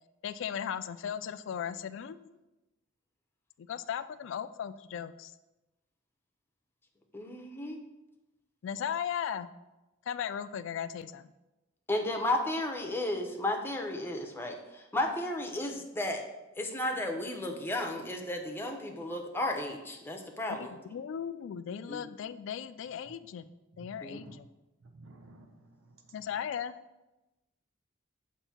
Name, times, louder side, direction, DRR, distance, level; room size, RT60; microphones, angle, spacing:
voice 1, 0.2-2.4 3.7-5.3 8.6-9.5 10.1-11.3 20.5-23.5 23.8-24.5 26.1-26.7, left 8 dB, 65° left, 14 dB, 0.3 m, -37 dB
voice 2, 7.1-7.8 11.9-16.2 16.6-20.7 21.9-22.0 24.0-24.2, left 1 dB, 10° left, 2 dB, 0.6 m, -33 dB
voice 3, 23.8-24.4 24.9-25.5, right 2 dB, 80° right, 5 dB, 0.8 m, -52 dB
6.8 x 2.6 x 5.7 m, 1.0 s
head